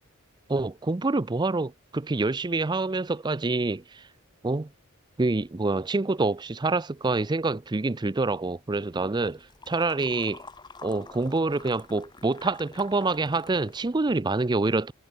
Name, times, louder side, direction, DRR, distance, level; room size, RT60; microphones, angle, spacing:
voice 1, 0.5-4.0 4.4-4.7 5.2-10.4 10.8-14.9, right 3 dB, 20° right, 0.5 m, -26 dB
sound 1, 8.9-14.2, left 3 dB, 20° left, 1.5 m, -48 dB
head